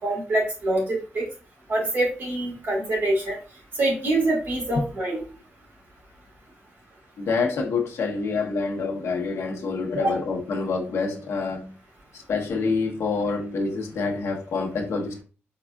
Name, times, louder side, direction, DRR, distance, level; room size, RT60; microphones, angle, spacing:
voice 1, 0.0-1.3 1.7-3.3 3.8-5.2 10.0-10.2, right 1 dB, 55° right, 2.1 m, -25 dB
voice 2, 7.2-11.7 12.1-15.2, left 4 dB, 85° left, 0.9 m, -27 dB
4.8 x 3.5 x 2.3 m
wide cardioid pair, 170°, 5 cm